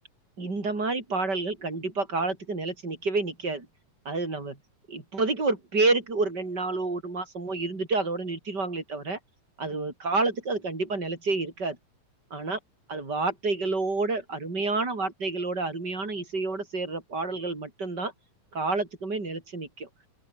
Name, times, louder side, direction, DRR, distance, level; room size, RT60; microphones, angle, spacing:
voice 1, 0.4-3.7 4.1-4.6 4.9-9.2 9.6-11.8 12.3-12.6 12.9-18.1 18.5-19.9, right 3 dB, 30° right, 5.5 m, -29 dB
open air
omnidirectional pair, 3.9 m